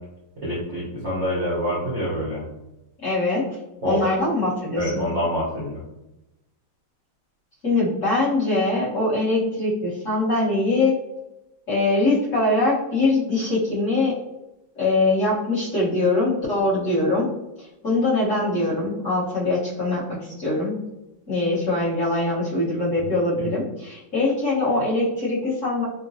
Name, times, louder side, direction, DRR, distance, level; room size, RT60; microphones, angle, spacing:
voice 1, 0.4-2.5 3.8-4.0 4.8-5.8 23.4-23.5, equal, 60° right, -6 dB, 0.7 m, -26 dB
voice 2, 3.0-5.0 7.6-10.9 11.7-14.1 14.7-17.3 17.6-20.7 21.3-25.8, left 2 dB, 45° left, -10 dB, 1.4 m, -22 dB
3.7 x 2.2 x 2.7 m, 0.93 s
omnidirectional pair, 2.2 m